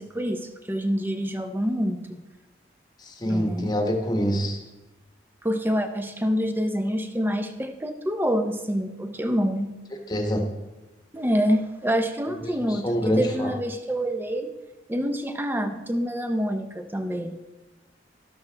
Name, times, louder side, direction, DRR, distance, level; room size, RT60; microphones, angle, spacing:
voice 1, 0.0-2.2 3.2-3.7 5.4-9.8 11.1-14.5 14.9-17.3, equal, 10° right, 7 dB, 0.7 m, -27 dB
voice 2, 3.2-4.6 10.1-10.5 12.4-13.5, equal, 20° left, 4 dB, 1.1 m, -25 dB
12.0 x 12.0 x 3.4 m, 1.1 s
head